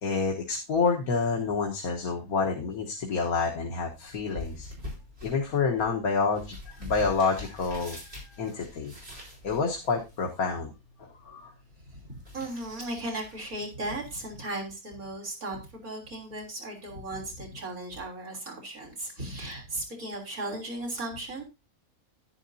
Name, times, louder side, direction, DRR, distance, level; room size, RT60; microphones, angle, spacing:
voice 1, 0.0-4.7 5.2-8.0 8.4-8.9 9.4-10.7 11.0-11.5, left 4 dB, 90° left, 1 dB, 1.8 m, -28 dB
sound 1, 3.6-14.6, left 2 dB, 45° right, 5.1 m, -46 dB
voice 2, 12.3-21.4, right 1 dB, 80° right, -1 dB, 3.8 m, -36 dB
10.5 x 10.5 x 2.7 m, 0.26 s
omnidirectional pair, 1.5 m